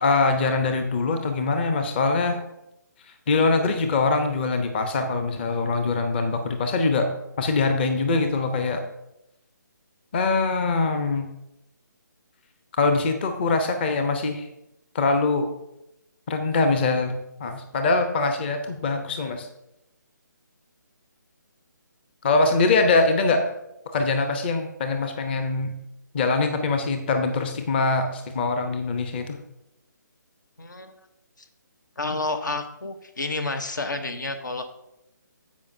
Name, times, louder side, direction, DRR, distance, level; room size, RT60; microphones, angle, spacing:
voice 1, 0.0-2.4 3.3-7.1 7.4-8.8 10.1-11.3 12.7-14.5 14.9-15.5 16.3-19.5 22.2-23.5 23.9-25.7 26.1-29.4, left 3 dB, 30° left, 6 dB, 0.9 m, -23 dB
voice 2, 30.6-30.9 32.0-34.7, left 3 dB, 70° left, 9 dB, 1.0 m, -30 dB
15.5 x 5.2 x 2.7 m, 0.86 s
figure-of-eight pair, 145°, 11 cm